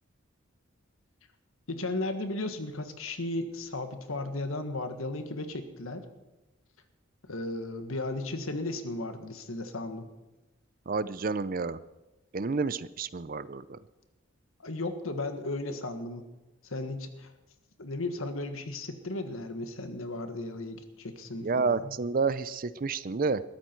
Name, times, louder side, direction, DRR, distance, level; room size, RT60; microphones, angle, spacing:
voice 1, 1.7-6.1 7.3-10.1 14.6-16.2 16.6-17.3 17.8-21.8, left 2 dB, 85° left, 8 dB, 1.7 m, -35 dB
voice 2, 10.9-11.8 12.3-13.8 21.4-23.4, right 4 dB, 45° right, 17 dB, 0.5 m, -30 dB
20.5 x 13.5 x 4.5 m, 1.0 s
head